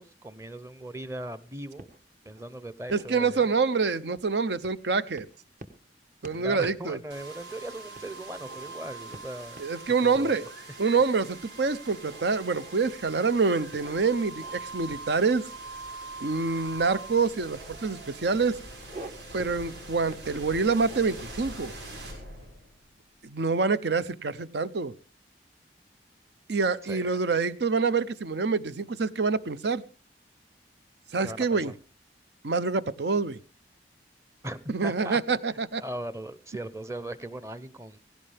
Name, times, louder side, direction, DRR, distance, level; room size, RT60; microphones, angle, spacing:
voice 1, 0.0-1.9 2.2-3.5 6.3-9.6 10.0-10.4 26.9-27.1 31.2-31.8 34.4-35.2 35.5-38.0, right 1 dB, 15° right, 0.8 m, -39 dB
sound 1, 1.8-2.4 2.9-4.2 4.6-4.9 5.2-5.9 6.2-6.4 6.6-6.9 7.3-7.4 7.9-8.7 9.1-9.8 10.1-10.4 11.0-11.5 11.9-13.0 13.7-14.6 14.9-15.8 16.8-16.9 17.3-17.8 18.3-19.1 19.4-19.6 20.1-21.2, right 2 dB, 45° right, 1.4 m, -48 dB
voice 2, 2.9-5.3 6.2-7.0 9.6-10.5 10.8-15.5 16.2-18.6 19.3-21.7 23.2-24.9 26.5-29.8 31.1-31.7 32.4-33.4 34.7-35.8, right 4 dB, 70° right, 0.7 m, -26 dB
sound 2, 7.1-22.9, right 2 dB, 85° right, 6.7 m, -43 dB
17.0 x 16.5 x 3.4 m
head